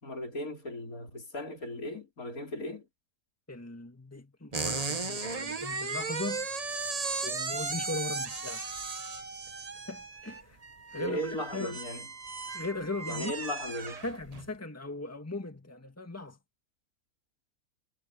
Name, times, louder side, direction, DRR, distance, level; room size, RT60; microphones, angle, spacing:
voice 1, 0.0-2.9 10.9-12.1 13.1-14.0, equal, 75° left, 4.4 m, -37 dB
voice 2, 3.5-6.5 7.2-8.7 9.9-10.6 10.9-11.2 11.5-11.8 12.5-13.3 14.0-16.4, left 2 dB, 10° left, 2.0 m, -38 dB
sound 1, 4.5-14.5, right 4 dB, 30° right, 1.1 m, -36 dB
omnidirectional pair, 1.5 m